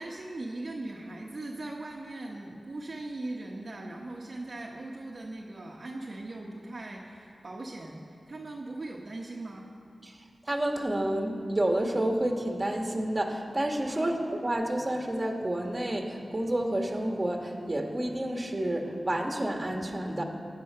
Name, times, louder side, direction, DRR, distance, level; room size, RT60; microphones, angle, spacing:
voice 1, 0.0-9.7 13.9-14.1, right 2 dB, 55° right, -2 dB, 1.2 m, -39 dB
voice 2, 10.5-14.2 14.4-20.3, right 1 dB, 25° right, 2 dB, 1.8 m, -29 dB
16.0 x 10.5 x 5.7 m, 2.4 s
wide cardioid pair, 70°, 0 cm